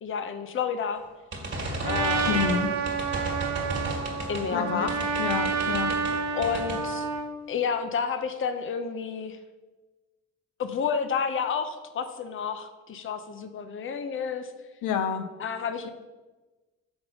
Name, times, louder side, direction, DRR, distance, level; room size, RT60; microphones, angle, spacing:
voice 1, 0.0-1.0 1.8-2.5 4.3-5.0 6.3-7.1 7.5-9.4 10.6-14.5 15.4-15.9, left 6 dB, 45° left, 9 dB, 0.6 m, -30 dB
sound 1, 1.3-4.5 4.9-6.2 6.4-6.8, right 1 dB, 40° right, 1.7 m, -33 dB
Trumpet, 1.8-7.3, right 5 dB, 65° right, 0.9 m, -29 dB
voice 2, 2.3-2.7 4.5-4.9 5.2-5.9 14.8-15.3, left 7 dB, 85° left, 7 dB, 0.6 m, -28 dB
5.8 x 4.0 x 5.5 m, 1.2 s
cardioid pair, 90°, 30 cm